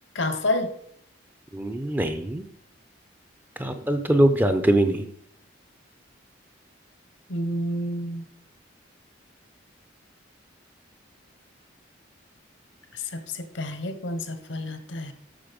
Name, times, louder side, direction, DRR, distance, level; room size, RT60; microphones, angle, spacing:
voice 1, 0.1-0.7 7.3-8.2 12.9-15.1, left 1 dB, 75° left, 10 dB, 1.1 m, -29 dB
voice 2, 1.5-2.4 3.6-5.1, right 1 dB, 10° right, 8 dB, 0.5 m, -22 dB
8.8 x 6.5 x 5.2 m, 0.69 s
head